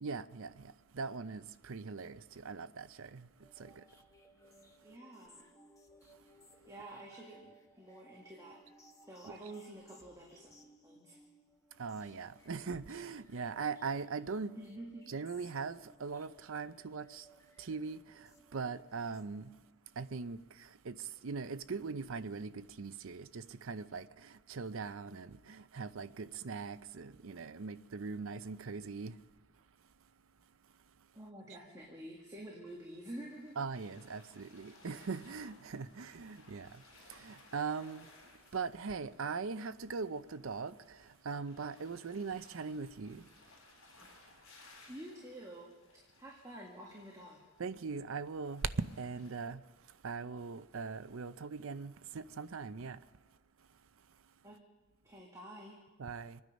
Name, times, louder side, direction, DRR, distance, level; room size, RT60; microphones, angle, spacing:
voice 1, 0.0-0.7 0.9-2.2 2.4-3.2 3.6-3.7 11.8-14.5 15.1-17.2 17.6-18.0 18.5-19.5 20.0-20.4 20.9-21.0 21.2-24.1 24.5-29.1 33.6-36.7 37.2-38.0 38.5-40.7 41.3-43.2 47.6-48.6 49.0-49.6 50.0-53.0 56.0-56.4, right 5 dB, 65° right, 0.6 m, -40 dB
sound 1, 3.4-19.8, equal, 15° left, 1.1 m, -63 dB
voice 2, 4.8-5.5 6.7-8.6 9.1-10.6 10.8-11.2 14.5-15.0 31.1-33.6 44.9-45.7 45.9-47.4 54.4-54.6 55.0-55.7, right 1 dB, 15° right, 1.9 m, -49 dB
sound 2, 32.7-49.3, left 2 dB, 65° left, 4.4 m, -62 dB
26.0 x 9.6 x 5.3 m
head